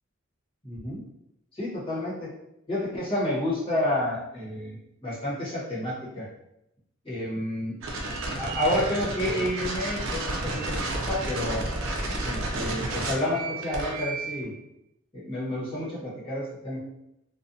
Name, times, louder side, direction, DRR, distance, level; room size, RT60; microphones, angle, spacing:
voice 1, 0.6-1.0 1.5-2.3 2.7-6.3 7.0-7.8 8.4-11.7 12.2-14.5 15.1-16.8, left 1 dB, 25° left, -8 dB, 1.0 m, -30 dB
sound 1, 7.8-14.4, right 2 dB, 75° right, 0.5 m, -31 dB
2.4 x 2.2 x 2.6 m, 0.84 s
head